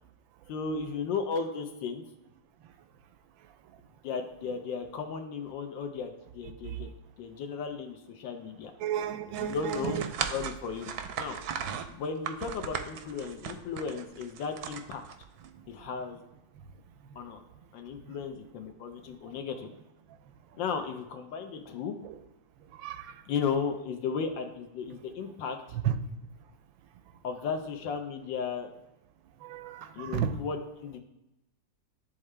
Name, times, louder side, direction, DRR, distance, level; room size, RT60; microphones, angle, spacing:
voice 1, 0.5-2.0 4.0-6.9 7.2-8.7 9.4-10.0 10.3-11.4 11.9-15.0 15.7-16.2 17.2-17.4 17.7-19.7 20.6-21.9 23.3-25.8 27.2-28.7 29.9-31.0, left 5 dB, 80° left, 1.4 m, -35 dB
voice 2, 8.8-10.1 22.0-22.1 22.8-23.0 25.7-26.0 29.4-30.4, right 9 dB, 90° right, 1.3 m, -32 dB
sound 1, 9.3-15.5, right 8 dB, 70° right, 0.9 m, -37 dB
10.5 x 3.6 x 3.2 m
omnidirectional pair, 2.0 m